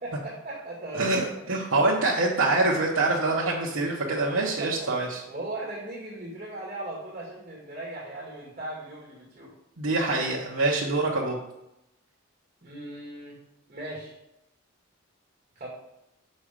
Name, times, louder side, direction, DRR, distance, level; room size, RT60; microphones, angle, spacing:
voice 1, 0.0-1.2 4.2-4.9 5.3-9.5 12.6-13.4 13.7-14.1 15.6-15.7, right 2 dB, 35° right, -4 dB, 1.8 m, -38 dB
voice 2, 0.9-5.2 9.8-11.4, right 2 dB, 75° right, -5 dB, 1.0 m, -25 dB
6.3 x 5.4 x 5.0 m, 0.88 s
head